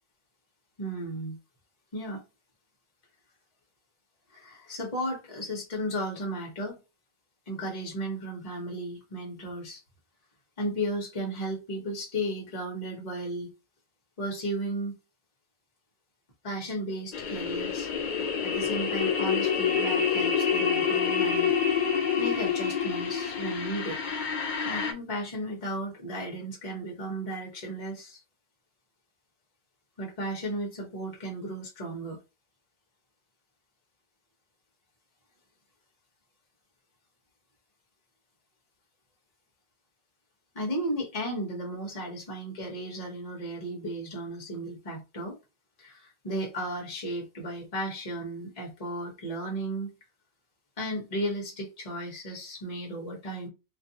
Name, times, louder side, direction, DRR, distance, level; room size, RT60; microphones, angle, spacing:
voice 1, 0.8-1.4 1.9-2.2 4.3-6.8 7.5-9.8 10.6-13.5 14.2-14.9 16.4-17.9 18.4-21.5 22.2-24.0 24.6-28.2 30.0-32.2 40.5-45.4 45.8-49.9 50.8-53.5, right 1 dB, 35° left, 1.0 m, -34 dB
sound 1, 17.1-24.9, left 6 dB, 55° left, 0.5 m, -27 dB
2.5 x 2.5 x 2.7 m
omnidirectional pair, 1.2 m